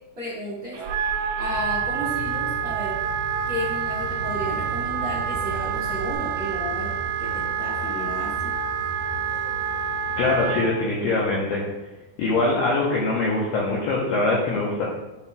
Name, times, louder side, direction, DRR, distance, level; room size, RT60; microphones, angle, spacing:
voice 1, 0.1-0.8 1.4-3.0 3.4-6.9 7.2-8.5, equal, 60° right, -8 dB, 1.4 m, -33 dB
Car / Engine starting, 0.7-6.1, right 3 dB, 40° right, 2.5 m, -37 dB
Wind instrument woodwind instrument, 0.8-10.7, right 8 dB, 85° right, 2.5 m, -28 dB
sound 1, 4.0-10.4, equal, 50° left, 1.6 m, -38 dB
voice 2, 10.2-11.6 12.2-14.8, left 2 dB, 80° left, -5 dB, 2.2 m, -23 dB
11.5 x 4.2 x 2.3 m, 1.0 s
omnidirectional pair, 5.6 m